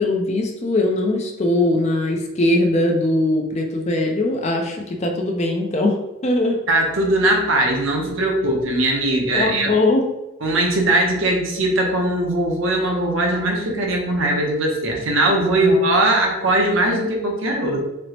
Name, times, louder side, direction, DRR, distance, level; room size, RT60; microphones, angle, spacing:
voice 1, 0.0-6.0 6.2-6.6 9.3-10.0 15.6-15.8, left 2 dB, 30° left, 2 dB, 0.4 m, -20 dB
voice 2, 6.7-9.7 10.4-17.8, right 1 dB, 75° right, 1 dB, 0.7 m, -20 dB
4.3 x 2.0 x 2.7 m, 0.97 s
head